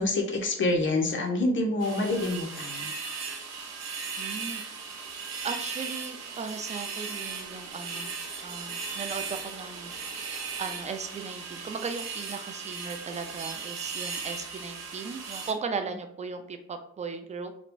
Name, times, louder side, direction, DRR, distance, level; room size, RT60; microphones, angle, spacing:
voice 1, 0.0-2.9, left 2 dB, 40° left, 1 dB, 0.8 m, -27 dB
sound 1, 1.8-15.5, right 5 dB, 60° right, 0.7 m, -37 dB
voice 2, 4.2-4.6 5.4-8.1 8.4-9.9 10.6-17.5, right 5 dB, 25° right, 7 dB, 0.3 m, -37 dB
3.0 x 2.1 x 2.5 m, 0.66 s
cardioid pair, 90°, 30 cm